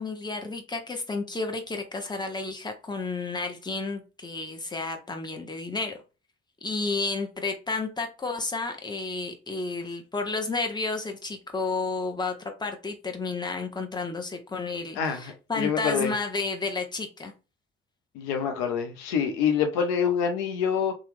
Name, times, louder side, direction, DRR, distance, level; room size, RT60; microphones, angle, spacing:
voice 1, 0.0-6.0 6.6-12.3 12.6-17.3, left 3 dB, 15° left, 0.8 m, -31 dB
voice 2, 14.9-16.1 18.1-21.0, left 7 dB, 75° left, 0.6 m, -26 dB
2.9 x 2.3 x 3.3 m
hypercardioid pair, 45°, 33 cm